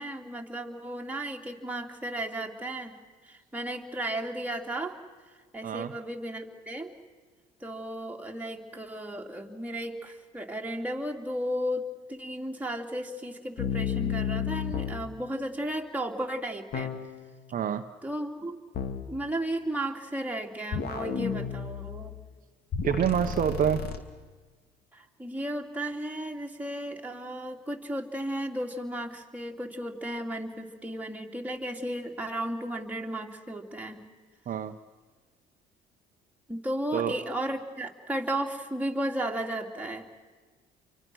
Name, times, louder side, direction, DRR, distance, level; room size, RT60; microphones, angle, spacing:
voice 1, 0.0-3.0 3.2-5.0 5.5-6.9 7.6-16.9 18.0-18.6 19.1-22.1 24.9-34.0 36.5-40.1, right 1 dB, 10° right, 1 dB, 3.0 m, -34 dB
sound 1, 13.6-15.1 16.7-17.3 18.7-19.1 20.7-22.2 22.7-24.0, left 8 dB, 55° left, 2.6 m, -32 dB
voice 2, 17.5-17.8 22.8-23.9 34.5-34.8 36.9-37.2, right 9 dB, 45° right, 7 dB, 1.0 m, -27 dB
29.5 x 24.5 x 6.4 m, 1.4 s
supercardioid pair, 80°, 19 cm